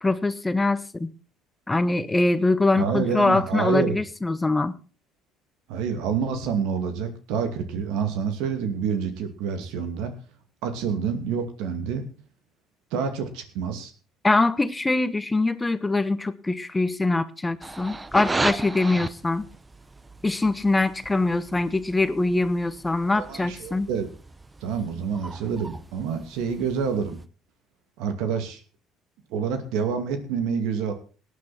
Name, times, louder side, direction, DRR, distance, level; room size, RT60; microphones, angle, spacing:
voice 1, 0.0-1.1 1.7-4.7 14.2-19.4 20.2-23.9, left 2 dB, 15° left, 1.0 m, -23 dB
voice 2, 2.8-4.0 5.7-10.1 10.6-12.1 12.9-13.9 23.2-24.1 24.6-27.2 28.0-28.6 29.3-30.9, right 6 dB, 75° right, 2.5 m, -27 dB
sound 1, 17.6-27.2, right 2 dB, 20° right, 0.9 m, -36 dB
18.0 x 9.5 x 4.3 m
supercardioid pair, 80°, 0 cm